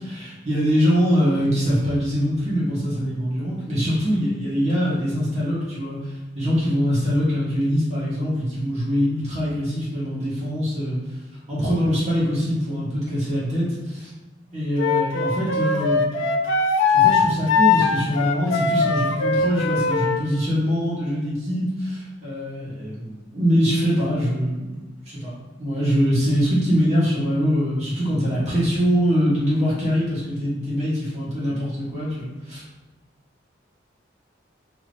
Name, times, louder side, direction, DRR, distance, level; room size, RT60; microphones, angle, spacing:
voice 1, 0.0-11.0 11.5-14.1 14.5-16.3 16.9-24.8 25.1-25.3 25.6-32.6, equal, 35° right, -8 dB, 1.3 m, -23 dB
Wind instrument woodwind instrument, 14.8-20.2, left 5 dB, 85° left, 0.4 m, -20 dB
3.4 x 2.9 x 2.5 m, 1.2 s
head